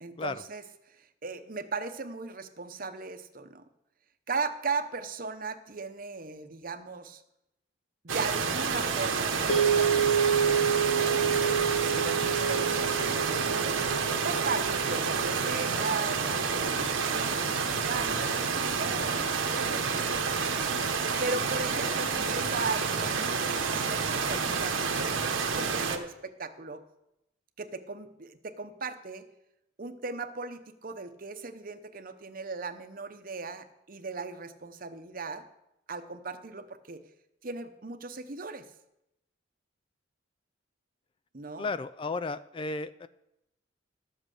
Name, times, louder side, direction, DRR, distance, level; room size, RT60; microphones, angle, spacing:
voice 1, 0.0-3.6 4.3-7.2 8.0-10.2 10.8-13.8 14.2-20.2 21.2-26.8 27.6-29.2 29.8-35.4 35.9-37.0 37.4-38.6 41.3-41.7, right 4 dB, 45° right, 9 dB, 0.9 m, -38 dB
sound 1, 8.1-26.0, right 5 dB, 90° right, 1.2 m, -29 dB
sound 2, 9.5-17.8, right 7 dB, 65° left, 1.9 m, -29 dB
voice 2, 41.6-43.1, left 3 dB, 25° left, 14 dB, 0.3 m, -33 dB
12.5 x 7.7 x 6.5 m, 0.86 s
head